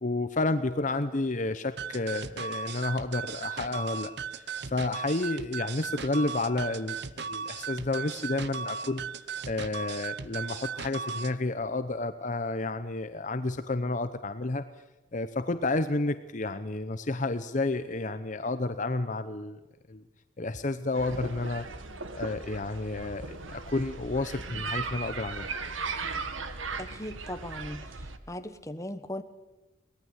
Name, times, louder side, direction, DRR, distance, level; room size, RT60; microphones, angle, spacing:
voice 1, 0.0-9.1 9.4-14.6 15.1-19.6 19.9-20.0 20.4-21.7 22.1-25.5, left 2 dB, 40° left, 10 dB, 0.8 m, -31 dB
sound 1, 1.8-11.4, right 6 dB, 60° right, 0.9 m, -37 dB
sound 2, 20.9-28.2, right 4 dB, 90° right, 1.8 m, -37 dB
voice 2, 26.8-27.8 28.3-29.2, left 1 dB, 15° left, 8 dB, 1.3 m, -38 dB
23.5 x 18.5 x 8.1 m, 1.0 s
head